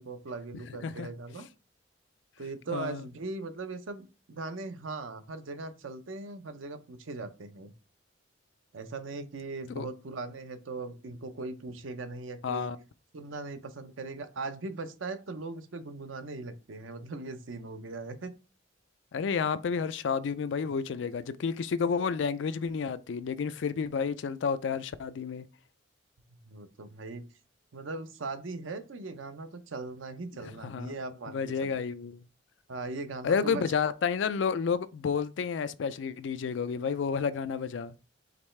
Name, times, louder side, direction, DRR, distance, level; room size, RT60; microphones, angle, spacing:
voice 1, 0.0-1.5 2.4-7.7 8.7-12.7 13.1-18.3 26.4-27.2 27.7-31.8 32.7-33.6, right 3 dB, 90° right, 0.7 m, -39 dB
voice 2, 0.7-1.1 2.7-3.0 9.8-9.9 12.4-12.8 19.1-25.4 30.4-30.9 31.3-32.2 33.2-37.9, left 6 dB, 65° left, 0.4 m, -30 dB
5.0 x 3.1 x 3.2 m
head